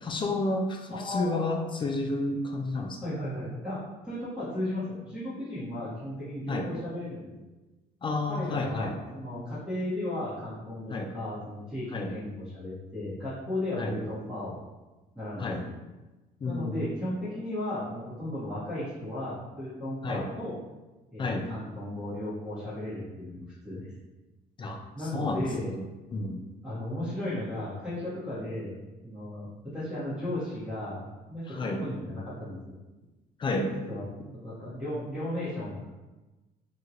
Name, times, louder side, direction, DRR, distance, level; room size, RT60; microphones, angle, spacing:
voice 1, 0.0-3.0 6.5-6.7 8.0-9.0 10.9-11.1 11.9-12.1 13.8-14.0 15.4-15.6 16.4-16.7 20.0-20.3 21.2-21.5 24.6-24.8 25.1-25.8 26.1-26.4 31.5-31.9 33.4-33.7, left 2 dB, 30° left, 3 dB, 0.3 m, -31 dB
voice 2, 0.9-1.6 3.0-3.8 4.0-7.3 8.3-14.6 15.1-15.7 16.4-20.6 21.1-23.9 24.9-25.7 26.6-28.7 29.0-31.0 31.3-32.7 33.5-34.0 34.3-35.9, left 1 dB, 5° right, -14 dB, 1.4 m, -35 dB
2.9 x 2.8 x 2.5 m, 1.1 s
cardioid pair, 110°, 17 cm